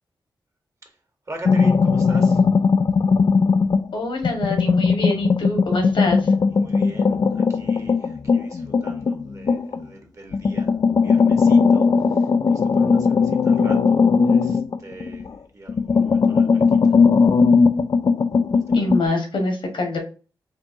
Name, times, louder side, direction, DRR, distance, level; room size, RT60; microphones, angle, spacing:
voice 1, 1.3-2.4 6.5-15.3 15.5-17.0 18.5-19.0, right 2 dB, 40° right, 3 dB, 1.4 m, -41 dB
sound 1, 1.4-3.9 4.2-9.8 10.3-15.3 15.7-19.0, left 5 dB, 45° left, 0.3 m, -18 dB
voice 2, 3.9-6.3 18.7-20.0, left 2 dB, 80° left, 4 dB, 1.5 m, -24 dB
4.5 x 2.8 x 2.7 m, 0.34 s
cardioid pair, 65°, 8 cm